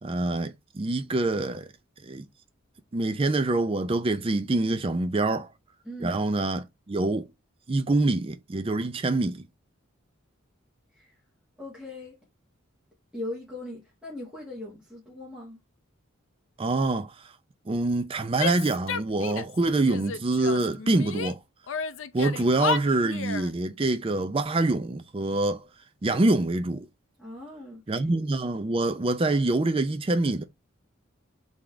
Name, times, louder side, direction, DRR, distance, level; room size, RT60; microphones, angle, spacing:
voice 1, 0.0-1.7 2.0-2.2 2.9-5.5 6.0-7.3 7.7-9.4 16.6-17.1 17.7-21.4 22.1-25.6 26.0-26.9 27.9-30.4, right 2 dB, 25° right, 0.4 m, -25 dB
voice 2, 5.8-6.2 10.9-11.2 11.6-12.2 13.1-15.6 27.2-28.0, left 1 dB, 5° right, 1.6 m, -39 dB
Female speech woman speaking / Yell, 18.4-19.6 19.9-21.3 21.7-23.5, left 6 dB, 65° left, 0.5 m, -32 dB
3.8 x 3.6 x 3.3 m
head